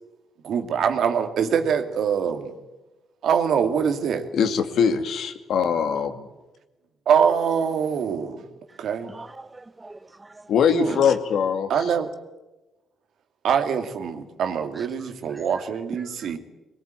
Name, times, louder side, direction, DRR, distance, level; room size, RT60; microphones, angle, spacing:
voice 1, 0.4-2.5 3.2-4.3 7.1-8.4 8.8-9.1 10.7-11.0 11.7-12.1 13.4-16.4, right 7 dB, 70° right, 2.3 m, -24 dB
voice 2, 4.3-6.2 10.5-11.7, left 7 dB, 70° left, 2.3 m, -22 dB
voice 3, 9.0-10.5 14.8-15.4 16.0-16.4, right 2 dB, 20° right, 0.9 m, -45 dB
21.0 x 20.0 x 9.0 m
cardioid pair, 90°, 0 cm